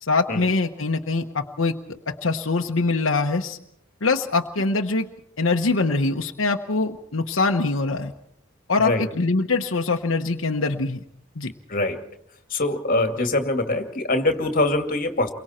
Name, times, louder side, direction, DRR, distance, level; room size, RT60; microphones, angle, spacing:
voice 1, 0.0-1.8 2.1-3.6 4.0-5.1 5.4-8.1 8.7-11.0 11.4-11.5, left 3 dB, 85° left, 2 dB, 1.1 m, -23 dB
voice 2, 11.7-12.1 12.5-15.3, left 2 dB, 45° left, 5 dB, 2.3 m, -23 dB
29.5 x 23.5 x 4.4 m, 0.71 s
head